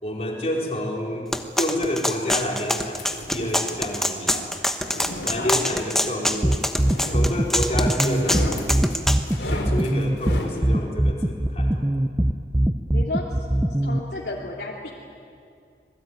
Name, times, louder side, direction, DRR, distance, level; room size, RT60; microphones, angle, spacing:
voice 1, 0.0-4.6 5.2-6.6 7.1-8.8 9.4-11.8, left 1 dB, 35° left, -1 dB, 4.2 m, -29 dB
sound 1, 1.3-9.2, left 1 dB, 5° left, 1.2 m, -25 dB
sound 2, 3.0-3.7 4.6-5.9 6.8-7.7 8.0-10.6, left 1 dB, 85° left, 4.0 m, -34 dB
voice 2, 5.3-5.6 12.9-13.3 13.8-14.9, left 2 dB, 70° left, -3 dB, 2.9 m, -32 dB
sound 3, 6.4-14.0, right 1 dB, 15° right, 0.7 m, -21 dB
26.5 x 20.5 x 9.5 m, 2.3 s
head